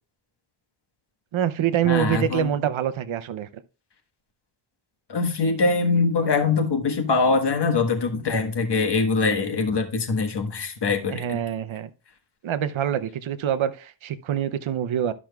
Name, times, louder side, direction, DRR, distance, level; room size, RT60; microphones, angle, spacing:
voice 1, 1.3-3.6 11.1-11.9 12.4-15.1, right 10 dB, 70° right, 0.7 m, -25 dB
voice 2, 1.8-2.5 5.1-11.3, left 4 dB, 55° left, 1.5 m, -23 dB
12.5 x 6.0 x 2.3 m
wide cardioid pair, 100°, 49 cm